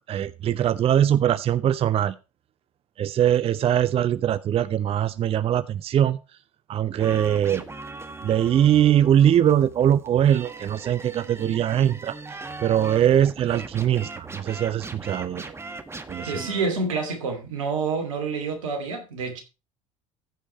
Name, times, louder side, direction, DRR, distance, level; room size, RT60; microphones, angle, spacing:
voice 1, 0.1-2.1 3.0-6.2 6.7-7.6 8.2-12.2 12.6-15.5 16.1-16.5, right 10 dB, 35° right, 0.5 m, -21 dB
sound 1, 7.0-16.7, right 3 dB, 15° right, 1.5 m, -39 dB
voice 2, 16.2-19.4, right 4 dB, 80° right, 2.8 m, -28 dB
15.0 x 5.3 x 4.6 m
hypercardioid pair, 70°, 17 cm